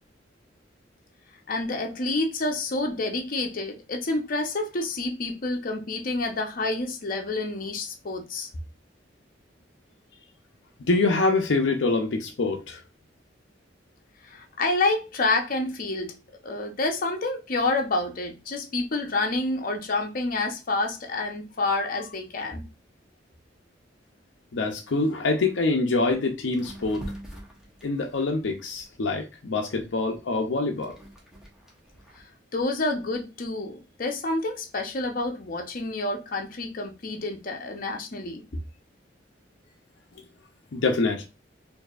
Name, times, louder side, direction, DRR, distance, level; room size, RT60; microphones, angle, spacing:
voice 1, 1.5-8.5 14.2-16.1 16.4-22.6 32.2-32.3 32.5-38.4, left 2 dB, 50° left, 0.8 m, -28 dB
voice 2, 10.9-12.8 24.5-27.1 27.8-31.0 40.7-41.2, left 3 dB, 85° left, 0.6 m, -25 dB
sound 1, 26.1-26.2 26.5-29.2 29.7-32.2, right 1 dB, 5° right, 1.0 m, -43 dB
4.6 x 2.7 x 2.4 m
head